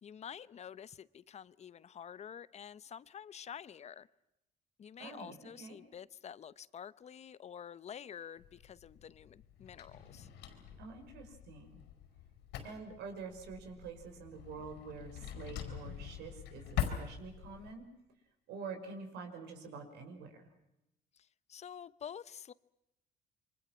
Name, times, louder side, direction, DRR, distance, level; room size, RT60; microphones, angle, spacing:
voice 1, 0.0-4.1 4.8-10.3 21.2-22.5, left 8 dB, 40° left, 0.8 m, -49 dB
voice 2, 5.0-5.8 10.8-11.8 12.6-17.9 18.5-20.4, right 4 dB, 80° right, 5.5 m, -47 dB
Drawer open or close, 8.4-17.7, left 10 dB, 90° left, 5.0 m, -44 dB
28.5 x 24.0 x 6.1 m
cardioid pair, 110°, 17 cm